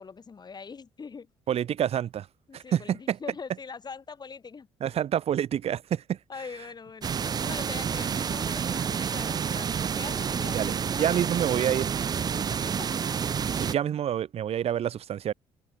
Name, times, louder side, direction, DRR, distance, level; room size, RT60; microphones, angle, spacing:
voice 1, 0.0-1.3 2.5-4.7 6.3-11.8 12.1-12.9, left 5 dB, 35° left, 4.7 m, -43 dB
voice 2, 1.5-2.3 2.5-3.2 4.8-6.2 10.5-11.9 13.6-15.3, right 10 dB, 60° right, 2.2 m, -28 dB
sound 1, 7.0-13.7, right 7 dB, 35° right, 0.4 m, -29 dB
supercardioid pair, 75°, 12 cm